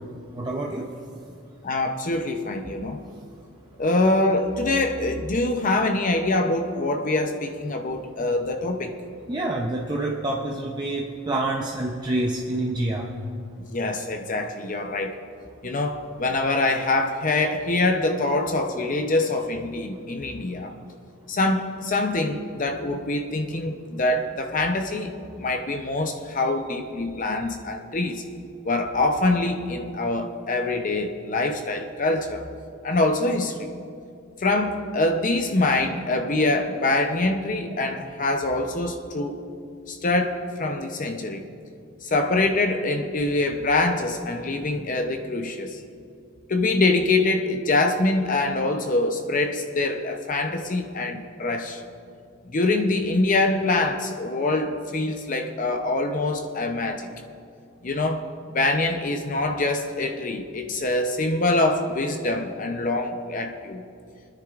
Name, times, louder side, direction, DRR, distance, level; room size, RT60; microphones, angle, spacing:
voice 1, 0.3-0.9 9.3-13.1, right 2 dB, 20° right, -1 dB, 0.6 m, -27 dB
voice 2, 1.6-3.0 3.8-8.9 13.6-15.2 15.6-20.7 21.3-28.2 28.6-32.4 32.8-33.7 34.4-39.4 39.9-41.5 42.0-45.8 46.5-51.8 52.4-57.1 57.8-58.2 58.5-63.8, left 2 dB, 45° left, 5 dB, 0.7 m, -24 dB
26.5 x 10.0 x 2.5 m, 2.4 s
head